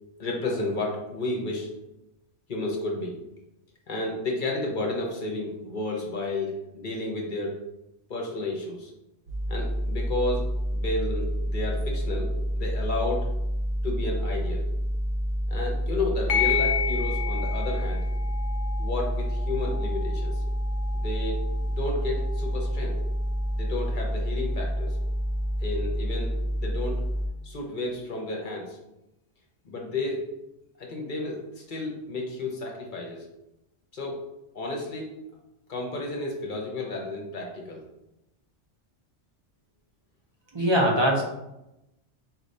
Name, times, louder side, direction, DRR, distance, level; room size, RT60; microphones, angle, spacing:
voice 1, 0.2-1.7 2.5-3.2 3.9-7.6 8.1-8.9 9.5-10.4 10.7-13.3 13.8-14.7 15.5-18.0 18.8-20.4 20.9-21.4 21.6-23.0 23.5-25.0 25.6-26.3 26.6-27.0 27.4-28.8 29.6-30.3 30.8-33.2 33.9-34.3 34.5-35.1 35.7-37.8, left 2 dB, 50° left, -1 dB, 0.8 m, -32 dB
sound 1, 9.3-27.3, equal, 80° right, 1.0 m, -28 dB
sound 2, 16.3-25.3, left 8 dB, 75° left, 0.9 m, -34 dB
voice 2, 40.5-41.2, equal, 30° right, -2 dB, 0.6 m, -21 dB
4.4 x 3.2 x 2.6 m, 0.91 s
omnidirectional pair, 1.2 m